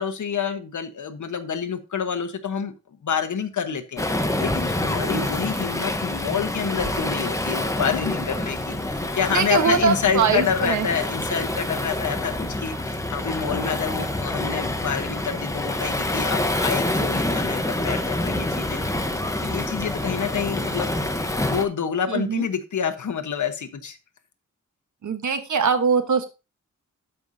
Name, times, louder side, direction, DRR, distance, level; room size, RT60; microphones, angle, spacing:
voice 1, 0.0-2.7 3.0-18.8 19.4-21.0 21.5-24.0, left 7 dB, 70° left, 9 dB, 1.1 m, -28 dB
Waves surf, 4.0-21.7, left 1 dB, 10° left, 0.9 m, -27 dB
voice 2, 5.0-5.3 9.3-10.9 22.1-22.4 25.0-26.3, right 5 dB, 70° right, 8 dB, 1.2 m, -22 dB
sound 1, 5.3-5.5 5.8-6.0 6.4-6.6 6.9-7.1 7.5-7.8 8.4-8.8 9.2-9.4 9.9-10.1 10.6-10.8 11.1-11.4 11.7-11.8 12.2-13.6 14.0-14.1 14.6-14.9 15.2-15.3 15.7-15.8 16.2-16.4 16.9-17.1 17.4-17.6 17.9-18.0 18.4-18.6 18.9-19.0, left 2 dB, 30° left, 2.6 m, -47 dB
12.5 x 5.5 x 2.7 m, 0.29 s
wide cardioid pair, 135°, 31 cm